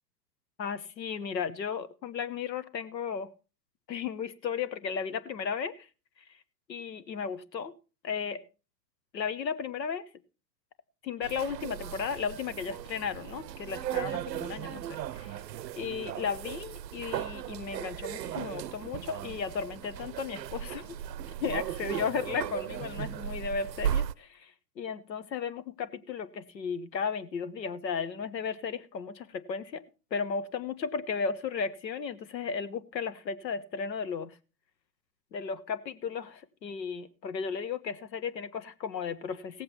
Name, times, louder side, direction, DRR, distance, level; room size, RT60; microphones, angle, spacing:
voice 1, 0.6-3.3 3.9-5.9 6.7-7.7 8.0-8.4 9.1-10.0 11.0-15.0 15.8-20.9 21.4-29.8 30.1-34.4 35.3-39.6, left 6 dB, 85° left, 15 dB, 1.1 m, -35 dB
sound 1, 11.2-24.1, right 10 dB, 80° right, 0.6 m, -36 dB
16.5 x 7.8 x 4.2 m, 0.34 s
hypercardioid pair, 110°, 49 cm